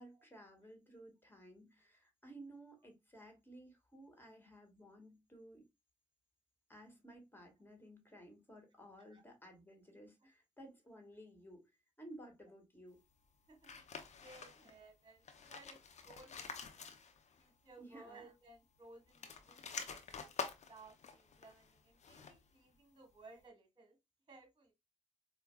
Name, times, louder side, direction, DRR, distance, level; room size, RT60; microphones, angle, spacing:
voice 1, 0.0-5.6 6.7-11.7 12.0-13.0 17.8-18.3, right 1 dB, 15° left, 1.6 m, -56 dB
voice 2, 13.5-13.8 14.2-16.9 17.4-19.6 19.9-20.3 20.6-24.0 24.3-24.7, right 3 dB, 35° right, 1.2 m, -60 dB
sound 1, 13.6-14.8 15.2-17.4 17.7-17.8 19.0-22.5, left 6 dB, 65° left, 0.6 m, -48 dB
4.5 x 2.2 x 2.2 m
supercardioid pair, 45°, 13 cm